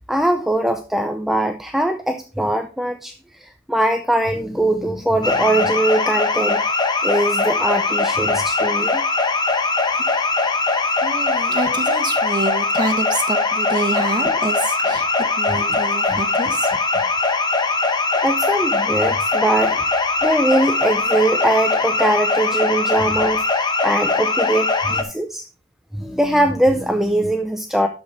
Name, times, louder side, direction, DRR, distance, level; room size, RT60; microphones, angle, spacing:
voice 1, 0.1-3.1 3.4-6.6 7.0-9.0 15.7-15.8 16.1-16.2 17.0-17.1 18.2-19.8 20.2-25.5 25.9-27.9, right 1 dB, ahead, 6 dB, 0.5 m, -21 dB
sound 1, 5.2-25.0, left 3 dB, 20° left, 1.1 m, -21 dB
voice 2, 11.0-15.1 15.4-16.7, right 3 dB, 20° right, 4 dB, 1.6 m, -26 dB
12.5 x 5.3 x 3.9 m, 0.34 s
head